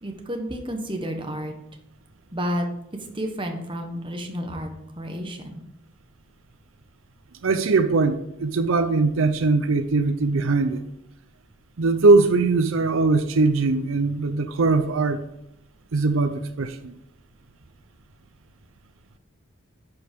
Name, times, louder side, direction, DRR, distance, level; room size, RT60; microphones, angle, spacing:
voice 1, 0.0-1.6 2.3-2.6 3.1-4.7 5.0-5.6, equal, 25° right, 4 dB, 1.2 m, -30 dB
voice 2, 7.4-10.8 11.8-15.2 15.9-16.9, right 3 dB, 85° right, 10 dB, 0.6 m, -21 dB
10.5 x 5.2 x 5.2 m, 0.82 s
head